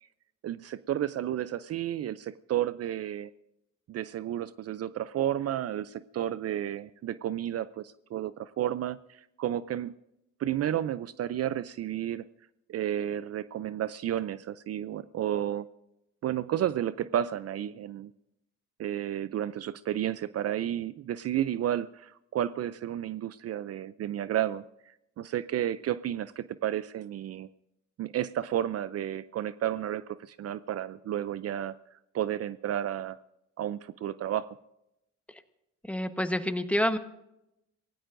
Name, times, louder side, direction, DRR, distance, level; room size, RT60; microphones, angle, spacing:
voice 1, 0.4-3.3 3.9-9.9 10.4-12.2 12.7-15.7 16.2-18.1 18.8-24.6 25.2-27.5 28.0-31.8 32.1-33.2 33.6-34.6, right 11 dB, 55° right, 16 dB, 0.5 m, -32 dB
voice 2, 35.8-37.0, left 1 dB, 5° left, 8 dB, 1.1 m, -28 dB
26.5 x 17.0 x 2.6 m, 0.87 s
cardioid pair, 90°, 30 cm